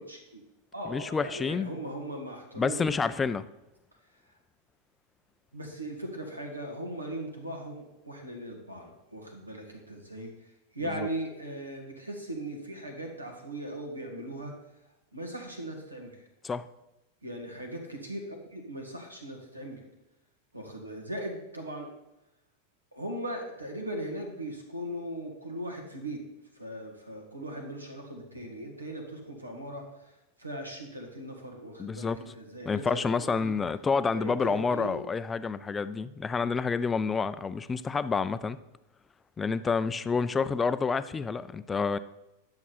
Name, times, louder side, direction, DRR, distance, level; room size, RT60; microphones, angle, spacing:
voice 1, 0.1-0.4 0.7-3.1 5.5-10.3 10.7-14.5 15.1-16.1 17.2-19.8 20.5-21.9 22.9-26.2 26.6-29.8 30.4-33.5 34.1-35.0, right 1 dB, 85° right, 1 dB, 1.8 m, -39 dB
voice 2, 0.9-1.7 2.6-3.4 11.0-11.1 16.4-16.6 31.8-32.2 32.7-38.6 39.4-42.0, left 5 dB, 15° left, 14 dB, 0.4 m, -29 dB
10.5 x 7.1 x 4.2 m, 0.94 s
figure-of-eight pair, 90°, 0 cm